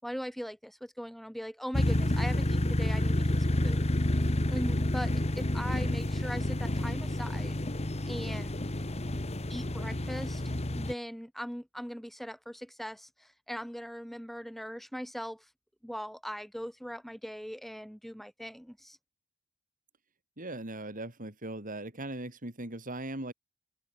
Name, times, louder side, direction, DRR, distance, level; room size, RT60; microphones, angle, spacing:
voice 1, 0.0-3.9 4.5-7.6 8.1-8.6 9.5-10.4 10.7-15.4 15.8-19.0, equal, ahead, 4.3 m, -40 dB
sound 1, 1.7-10.9, left 1 dB, 30° left, 1.5 m, -29 dB
voice 2, 20.4-23.3, right 1 dB, 40° right, 5.1 m, -39 dB
open air
head